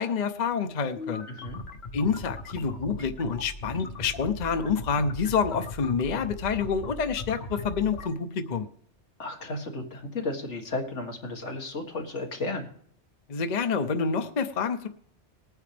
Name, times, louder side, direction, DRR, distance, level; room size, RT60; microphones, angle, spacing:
voice 1, 0.0-1.3 1.9-8.7 13.3-14.9, left 5 dB, 45° left, 9 dB, 0.8 m, -28 dB
sound 1, 1.0-8.1, left 2 dB, 60° left, 1.4 m, -39 dB
voice 2, 1.3-1.6 9.2-12.7, left 2 dB, 85° left, 2 dB, 2.1 m, -34 dB
20.0 x 9.2 x 3.4 m, 0.62 s
omnidirectional pair, 1.2 m